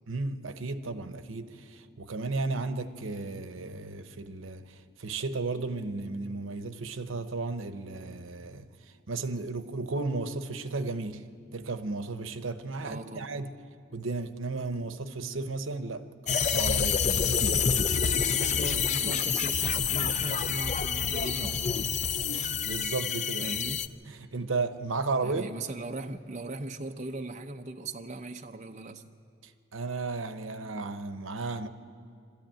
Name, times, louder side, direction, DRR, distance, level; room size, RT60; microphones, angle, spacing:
voice 1, 0.1-11.3 11.5-13.5 13.9-16.0 16.3-17.7 21.7-21.9 22.3-23.6 24.1-25.5 29.4-31.7, right 3 dB, 85° right, 0.9 m, -34 dB
voice 2, 12.8-13.4 18.2-21.9 23.4-23.9 25.2-29.1, right 2 dB, 35° right, 0.6 m, -39 dB
sound 1, 16.3-23.9, left 6 dB, 35° left, 0.5 m, -27 dB
23.5 x 13.5 x 9.0 m
head